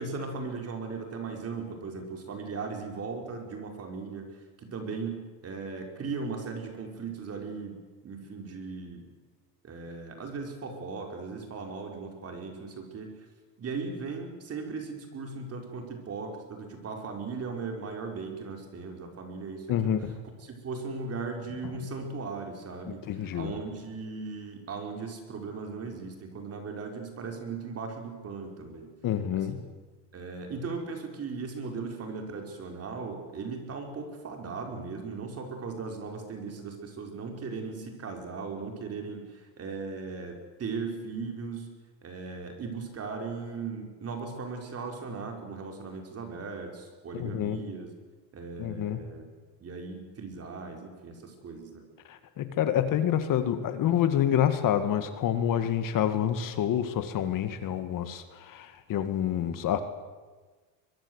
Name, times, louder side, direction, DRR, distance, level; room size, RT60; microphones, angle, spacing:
voice 1, 0.0-9.1 9.6-13.1 13.6-20.0 20.4-28.9 29.3-29.6 30.1-41.7 42.0-47.9 48.3-49.2 49.6-51.9, right 4 dB, 35° right, 3 dB, 5.1 m, -38 dB
voice 2, 19.7-20.1 23.1-23.5 29.0-29.6 47.1-47.6 48.6-49.0 52.1-59.8, left 10 dB, 45° left, 10 dB, 1.8 m, -27 dB
24.0 x 22.5 x 8.1 m, 1.3 s
cardioid pair, 145°, 43 cm